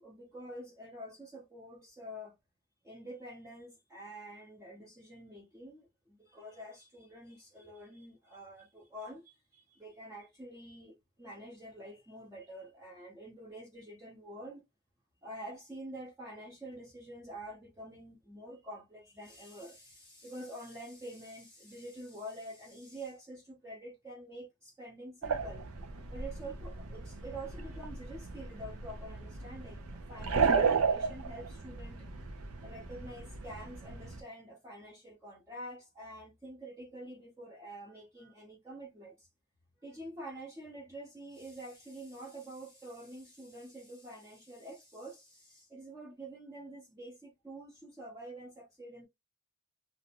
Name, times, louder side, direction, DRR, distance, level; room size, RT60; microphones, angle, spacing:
voice 1, 0.0-2.4 2.8-14.6 15.2-25.7 26.1-32.1 32.6-39.3 39.8-49.1, right 1 dB, 15° right, 0.6 m, -47 dB
sound 1, 25.2-34.2, right 5 dB, 80° right, 0.6 m, -34 dB
2.5 x 2.1 x 2.8 m
head